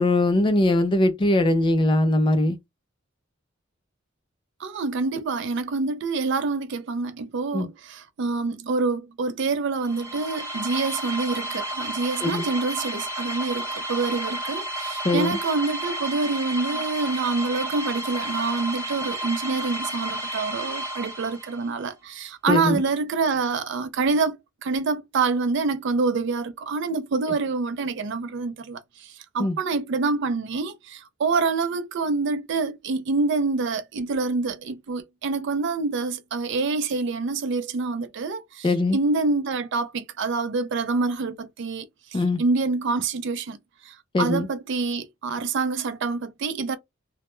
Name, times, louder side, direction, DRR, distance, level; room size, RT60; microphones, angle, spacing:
voice 1, 0.0-2.6 7.5-7.7 12.2-12.5 15.0-15.4 22.5-22.8 29.4-29.6 38.6-39.0 42.1-42.4 44.1-44.5, left 2 dB, 25° left, 0.3 m, -21 dB
voice 2, 4.6-24.4 24.6-43.6 43.8-46.8, right 4 dB, 60° right, 0.4 m, -26 dB
sound 1, 9.8-21.7, right 1 dB, 15° right, 0.8 m, -32 dB
2.1 x 2.1 x 2.9 m
head